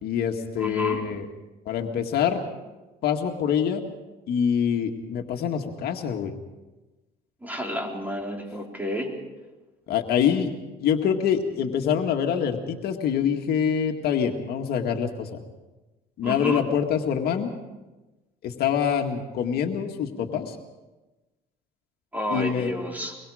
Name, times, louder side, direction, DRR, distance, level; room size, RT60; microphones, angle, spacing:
voice 1, 0.0-1.3 1.7-2.4 3.0-3.8 4.3-6.3 9.9-10.5 10.8-15.3 16.2-17.5 18.4-20.6 22.3-22.7, left 8 dB, 70° left, 3 dB, 2.0 m, -25 dB
voice 2, 0.6-1.0 7.4-9.1 16.2-16.6 22.1-23.2, equal, 10° right, 0 dB, 4.2 m, -30 dB
24.0 x 22.0 x 5.0 m, 1.1 s
cardioid pair, 110°, 17 cm